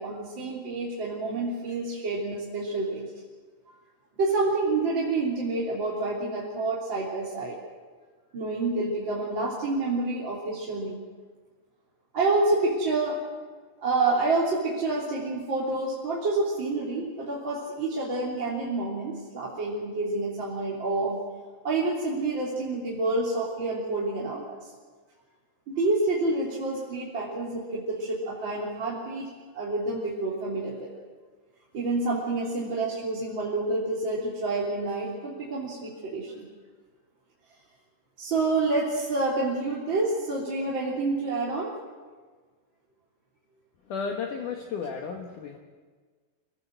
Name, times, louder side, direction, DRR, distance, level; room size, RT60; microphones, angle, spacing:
voice 1, 0.0-3.1 4.2-7.6 8.3-11.0 12.1-13.2 13.8-21.2 21.6-24.7 25.7-29.3 29.5-30.9 31.7-36.5 38.2-41.7, right 2 dB, 30° right, -5 dB, 3.5 m, -28 dB
voice 2, 43.9-45.6, left 5 dB, 60° left, 2 dB, 2.6 m, -33 dB
27.0 x 18.5 x 7.8 m, 1.4 s
omnidirectional pair, 4.7 m